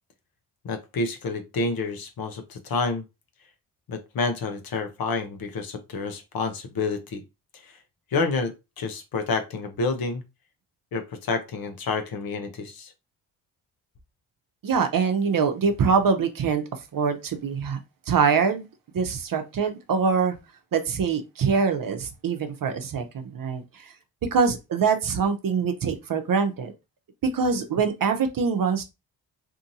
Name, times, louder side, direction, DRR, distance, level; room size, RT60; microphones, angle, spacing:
voice 1, 0.6-3.0 3.9-7.2 8.1-10.2 10.9-12.9, left 3 dB, 50° left, 0.9 m, -29 dB
voice 2, 14.6-16.6 16.9-17.8 18.1-18.6 18.9-20.4 20.7-23.0 23.3-23.6 24.2-26.7 27.3-28.8, right 5 dB, 45° right, 0.8 m, -24 dB
2.8 x 2.6 x 2.6 m
supercardioid pair, 50°, 46 cm